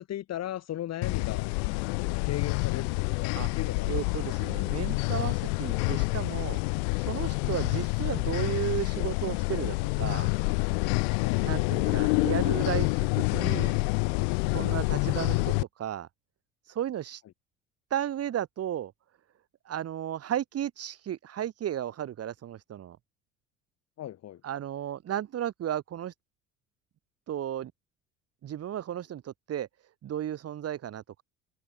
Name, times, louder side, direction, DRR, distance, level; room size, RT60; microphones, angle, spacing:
voice 1, 0.0-1.5 1.8-4.3 7.5-7.6 11.2-11.4 24.0-24.4, left 12 dB, 45° left, 5.0 m, -38 dB
sound 1, 1.0-15.6, left 39 dB, 60° left, 4.9 m, -28 dB
voice 2, 3.9-6.6 7.0-10.3 11.4-13.8 14.5-16.1 16.7-17.2 17.9-18.9 19.7-23.0 24.4-26.1 27.3-27.7 28.4-29.7 30.0-31.2, right 11 dB, 40° right, 4.3 m, -34 dB
figure-of-eight pair, 60°, 35 cm